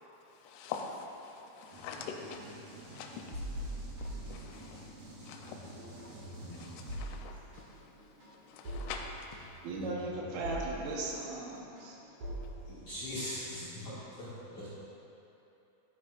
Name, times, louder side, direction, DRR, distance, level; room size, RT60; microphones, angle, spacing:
voice 1, 0.3-9.7, left 5 dB, 85° left, 2 dB, 3.1 m, -46 dB
sound 1, 1.7-7.0, right 1 dB, 65° right, 2.8 m, -51 dB
sound 2, 3.3-5.0 5.3-14.0, right 1 dB, 50° right, 1.9 m, -43 dB
voice 2, 9.6-12.0, right 2 dB, 90° right, -4 dB, 3.8 m, -37 dB
voice 3, 12.6-14.7, left 1 dB, 55° left, -13 dB, 1.7 m, -41 dB
12.0 x 8.0 x 2.5 m, 2.9 s
omnidirectional pair, 5.6 m